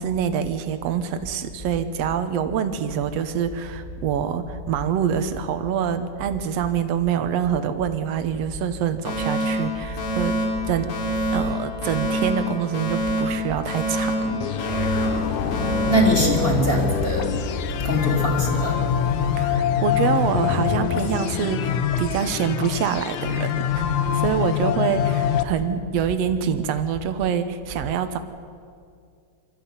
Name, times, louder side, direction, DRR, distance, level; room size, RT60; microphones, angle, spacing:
voice 1, 0.0-11.0 11.3-14.5 19.4-23.8 24.1-28.2, right 8 dB, 80° right, 10 dB, 1.4 m, -26 dB
Alarm, 9.1-17.1, equal, 90° left, 5.0 m, -27 dB
sound 1, 14.4-25.4, left 9 dB, 70° left, 1.9 m, -24 dB
voice 2, 15.2-17.3 17.7-18.9 22.1-22.2 23.9-24.4, equal, 15° left, 0 dB, 3.4 m, -24 dB
24.0 x 14.0 x 9.6 m, 2.2 s
omnidirectional pair, 4.2 m